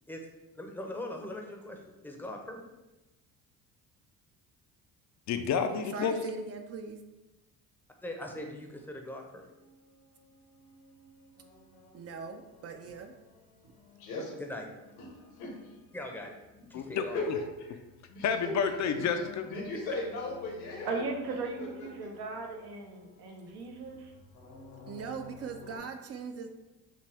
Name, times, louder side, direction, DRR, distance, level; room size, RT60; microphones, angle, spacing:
voice 1, 0.6-2.6 8.0-9.4 14.4-14.7 15.9-16.4 16.7-17.2, left 1 dB, 5° left, 2 dB, 0.6 m, -41 dB
voice 2, 5.3-6.2 16.7-17.1 18.2-19.5, left 7 dB, 50° left, 8 dB, 0.5 m, -29 dB
voice 3, 5.9-7.0 11.9-13.1 24.9-26.5, right 5 dB, 45° right, 6 dB, 0.5 m, -40 dB
sound 1, 9.2-25.8, left 4 dB, 70° left, 1.0 m, -55 dB
voice 4, 14.0-14.4 15.0-15.1 15.4-15.5 17.1-17.2 17.6-17.8 18.1-18.3 18.9-19.2 19.5-21.0 21.6-22.1, left 3 dB, 85° left, -1 dB, 1.4 m, -37 dB
voice 5, 20.8-24.1, right 3 dB, 80° right, 2 dB, 0.9 m, -37 dB
5.8 x 2.2 x 3.4 m, 1.0 s
cardioid pair, 100°, 36 cm